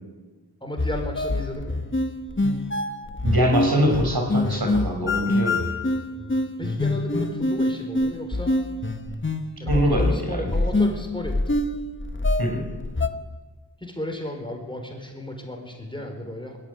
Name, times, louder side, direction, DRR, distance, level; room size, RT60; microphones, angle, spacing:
voice 1, 0.6-1.8 6.2-8.6 9.6-11.4 13.8-16.6, left 1 dB, 10° left, 2 dB, 4.9 m, -34 dB
sound 1, 0.8-13.1, left 2 dB, 30° left, 1.3 m, -25 dB
voice 2, 3.2-5.6 9.7-10.5 12.4-12.6, equal, 60° right, 2 dB, 5.5 m, -23 dB
21.0 x 14.0 x 9.6 m, 1.3 s
wide cardioid pair, 55°, 41 cm